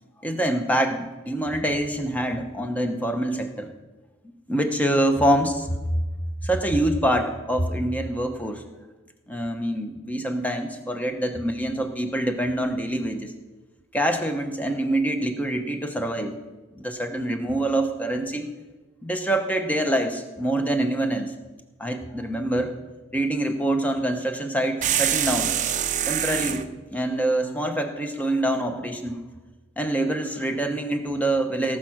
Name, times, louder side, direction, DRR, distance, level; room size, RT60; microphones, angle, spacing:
voice 1, 0.2-3.7 4.5-6.0 6.4-8.6 9.3-13.3 13.9-16.3 16.8-18.5 19.0-21.3 21.8-22.7 23.1-25.6 26.1-29.2 29.8-31.8, right 1 dB, 5° left, 6 dB, 0.9 m, -25 dB
sound 1, 24.8-26.7, right 10 dB, 35° right, 0.5 m, -24 dB
18.0 x 6.4 x 6.0 m, 1.2 s
head